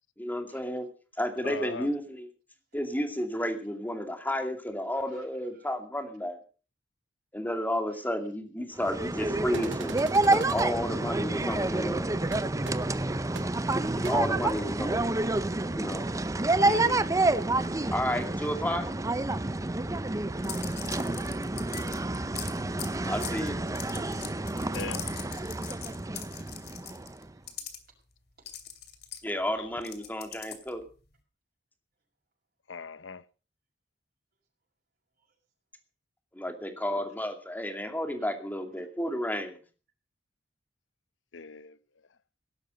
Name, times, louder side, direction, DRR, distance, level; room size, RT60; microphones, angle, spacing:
voice 1, 0.2-0.9 1.2-2.3 2.7-6.4 7.3-10.0 10.3-12.1 14.0-15.1 15.8-16.1 17.9-18.9 23.1-23.6 23.9-24.2 29.2-30.8 36.3-39.6, left 1 dB, 10° left, 2.5 m, -32 dB
voice 2, 1.4-1.9 16.6-17.1 24.7-25.1 29.6-29.7 32.7-33.2 41.3-41.8, left 4 dB, 85° left, 0.8 m, -39 dB
voice 3, 4.9-5.3 5.5-5.7 7.9-8.1 27.0-27.7 35.2-35.3 38.2-38.3, right 7 dB, 55° right, 6.4 m, -65 dB
sound 1, 8.8-27.2, right 2 dB, 20° right, 0.6 m, -29 dB
sound 2, 9.5-10.7 12.3-12.4 12.6-12.7 13.3-13.4 14.0-14.1, right 5 dB, 75° right, 0.9 m, -41 dB
sound 3, 20.4-27.8 28.5-30.8, left 10 dB, 60° left, 2.7 m, -41 dB
17.5 x 12.0 x 5.2 m
head